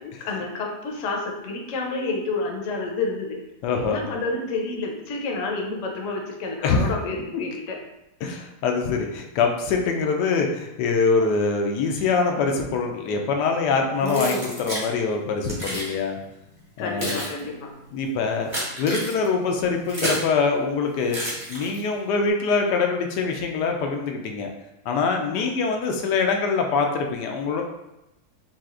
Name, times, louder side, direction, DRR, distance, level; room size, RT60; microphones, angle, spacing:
voice 1, 0.2-3.4 3.7-7.8 14.0-14.5 16.8-17.7 25.3-25.5, left 3 dB, 60° left, 1 dB, 0.9 m, -29 dB
voice 2, 3.6-4.0 6.6-6.8 8.2-16.2 16.8-17.2 17.9-18.5 18.8-21.2 21.5-24.5 24.9-27.6, left 4 dB, 90° left, 2 dB, 1.2 m, -24 dB
Keys jangling, 14.0-14.9 15.4-15.9 16.6-20.3 21.1-22.0, right 1 dB, 20° right, 0.9 m, -31 dB
5.6 x 2.4 x 2.4 m, 0.92 s
omnidirectional pair, 1.7 m